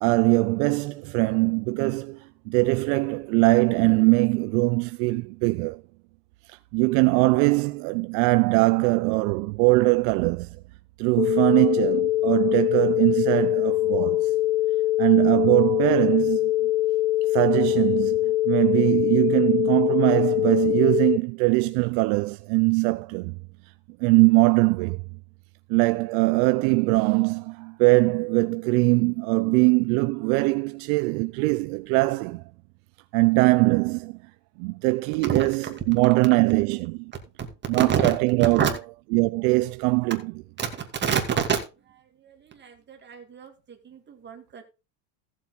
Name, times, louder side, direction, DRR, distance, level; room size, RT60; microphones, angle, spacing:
voice 1, 0.0-5.8 6.5-10.6 11.0-14.3 15.0-16.7 17.3-23.4 24.0-25.0 25.7-32.4 33.1-34.2 34.6-37.1 37.7-38.7 39.1-40.3, right 26 dB, 60° right, 0.6 m, -22 dB
sound 1, 11.2-21.2, left 15 dB, 75° left, 0.6 m, -23 dB
voice 2, 40.6-41.6 42.2-44.6, right 7 dB, 20° right, 2.3 m, -28 dB
15.0 x 7.4 x 3.9 m
supercardioid pair, 140°, 49 cm